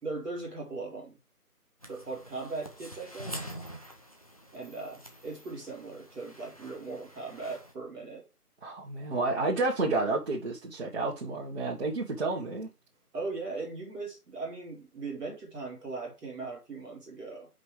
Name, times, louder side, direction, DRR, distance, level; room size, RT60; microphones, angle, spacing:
voice 1, 0.0-1.2 1.9-3.4 4.5-8.2 13.1-17.5, right 3 dB, ahead, 1.1 m, -39 dB
sound 1, 1.8-7.7, equal, 25° left, 0.7 m, -46 dB
voice 2, 8.6-12.7, right 3 dB, 45° right, 1.5 m, -30 dB
5.5 x 5.3 x 4.6 m
figure-of-eight pair, 160°, 46 cm